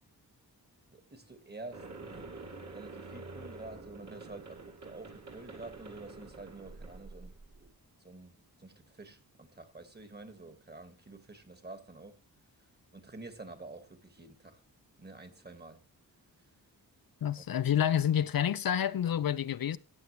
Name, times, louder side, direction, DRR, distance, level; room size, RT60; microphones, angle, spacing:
voice 1, 0.9-7.3 8.0-12.2 12.9-14.6 15.0-15.8, right 3 dB, 25° right, 1.8 m, -49 dB
sound 1, 1.7-7.7, right 3 dB, 45° right, 2.2 m, -47 dB
voice 2, 17.2-19.8, left 9 dB, 65° left, 0.6 m, -28 dB
15.0 x 8.3 x 3.1 m
wide cardioid pair, 100°, 38 cm